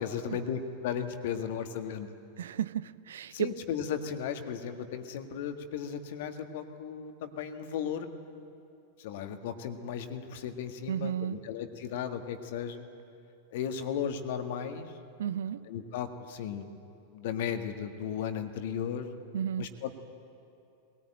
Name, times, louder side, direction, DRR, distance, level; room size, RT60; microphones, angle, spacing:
voice 1, 0.0-2.1 3.3-8.1 9.0-12.8 13.5-14.9 15.7-16.8 17.1-19.1 19.6-19.9, left 8 dB, 55° left, 1.7 m, -35 dB
voice 2, 2.4-3.5 10.9-11.4 15.2-15.7 19.3-19.8, right 9 dB, 60° right, 0.5 m, -33 dB
21.5 x 18.5 x 9.0 m
figure-of-eight pair, 90°, 0 cm